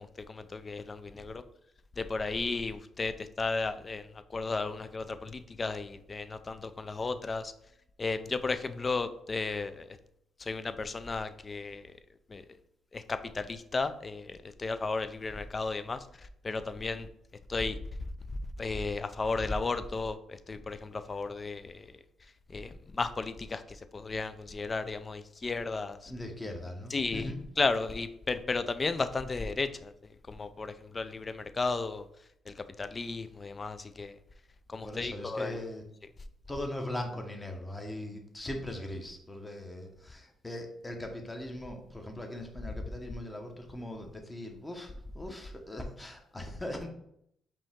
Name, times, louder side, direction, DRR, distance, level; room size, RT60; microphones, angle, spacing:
voice 1, 0.0-1.4 2.0-4.1 4.3-7.5 8.0-9.9 10.4-11.8 12.3-12.4 12.9-16.0 16.4-17.1 17.5-17.8 18.6-20.2 20.5-21.9 22.5-23.6 23.9-26.1 26.9-27.3 27.6-29.9 30.3-32.1 32.5-34.1 34.7-35.6, left 3 dB, 30° left, 11 dB, 0.4 m, -34 dB
voice 2, 26.1-27.4 34.8-35.8 36.5-46.9, left 1 dB, 15° left, 3 dB, 0.9 m, -40 dB
5.0 x 2.9 x 3.5 m, 0.73 s
cardioid pair, 90°, 0 cm